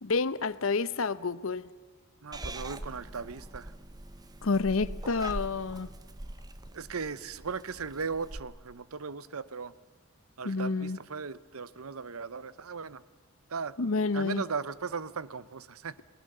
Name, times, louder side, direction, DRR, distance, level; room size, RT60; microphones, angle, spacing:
voice 1, 0.0-1.7 4.4-5.9 10.4-11.0 13.8-14.4, left 4 dB, 65° left, 17 dB, 0.8 m, -29 dB
voice 2, 2.2-3.7 6.7-9.7 10.4-13.0 13.5-13.7 14.1-15.9, right 5 dB, 80° right, 17 dB, 0.8 m, -37 dB
Purr / Meow, 2.3-8.4, right 1 dB, 20° right, 0.8 m, -43 dB
29.0 x 19.5 x 6.7 m, 1.4 s
head